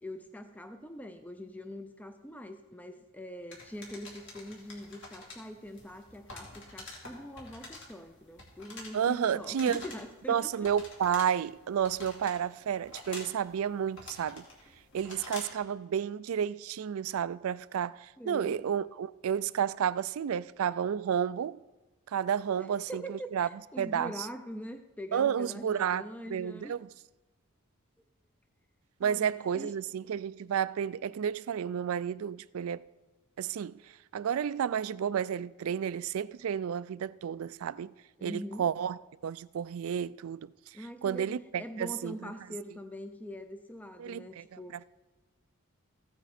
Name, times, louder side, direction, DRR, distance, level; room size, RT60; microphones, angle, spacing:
voice 1, 0.0-10.7 18.2-18.5 22.5-26.8 29.0-29.7 38.2-38.7 40.7-44.9, equal, 5° left, 0.4 m, -43 dB
sound 1, 3.5-15.6, left 2 dB, 55° left, 2.8 m, -48 dB
voice 2, 8.9-9.8 10.3-14.4 14.9-21.6 22.1-23.5 23.8-24.3 25.1-26.0 26.3-26.9 29.0-32.9 33.4-33.8 34.1-37.9 38.2-40.5 41.0-42.3 44.0-44.9, right 8 dB, 75° right, 0.3 m, -31 dB
15.0 x 9.0 x 4.2 m
head